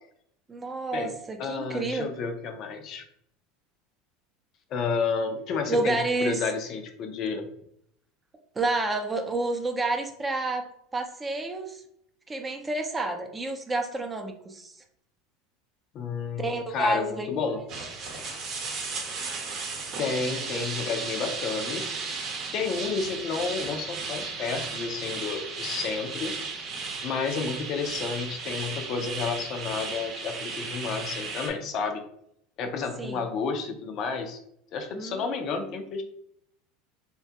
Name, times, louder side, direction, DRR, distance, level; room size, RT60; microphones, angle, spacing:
voice 1, 0.5-2.1 5.7-6.4 8.6-10.7 10.9-11.8 12.3-14.7 16.4-17.4 20.5-20.7 33.0-33.2 34.9-35.6, right 2 dB, 20° right, 5 dB, 0.5 m, -29 dB
voice 2, 1.4-3.0 4.7-7.5 15.9-17.6 20.0-22.0 22.5-26.3 27.0-32.0 32.6-34.4 34.7-36.0, left 5 dB, 55° left, 6 dB, 0.4 m, -31 dB
sound 1, 17.7-31.5, right 4 dB, 50° right, 0.8 m, -35 dB
3.1 x 2.2 x 2.8 m, 0.72 s
hypercardioid pair, 95°, 0 cm